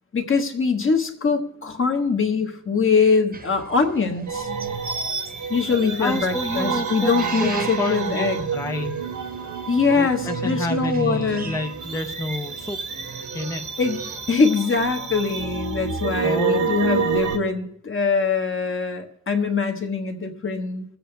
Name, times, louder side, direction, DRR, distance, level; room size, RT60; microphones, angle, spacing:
voice 1, 0.1-4.5 5.5-8.5 9.7-11.5 13.8-14.0 14.3-20.8, left 5 dB, 40° left, 4 dB, 1.4 m, -23 dB
sound 1, 3.3-14.4, right 3 dB, 30° right, 1.0 m, -39 dB
sound 2, 4.3-17.4, right 5 dB, 70° right, 1.0 m, -29 dB
voice 2, 6.0-7.1 7.4-9.0 9.9-12.8 13.3-13.6 16.2-16.6, left 2 dB, 10° left, 5 dB, 0.5 m, -29 dB
23.0 x 7.8 x 3.3 m, 0.71 s
wide cardioid pair, 135°, 31 cm